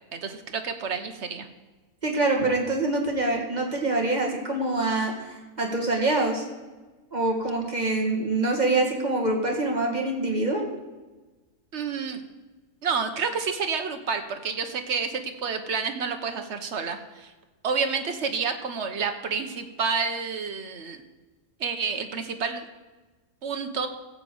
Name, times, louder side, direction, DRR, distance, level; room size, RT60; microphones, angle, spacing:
voice 1, 0.1-1.5 11.7-12.2 12.8-17.3 17.6-21.0 21.6-22.6 23.4-23.9, right 5 dB, 55° right, 6 dB, 1.3 m, -29 dB
voice 2, 2.0-6.4 7.1-10.7, right 2 dB, 30° right, -1 dB, 2.0 m, -25 dB
15.0 x 5.2 x 7.8 m, 1.2 s
omnidirectional pair, 1.5 m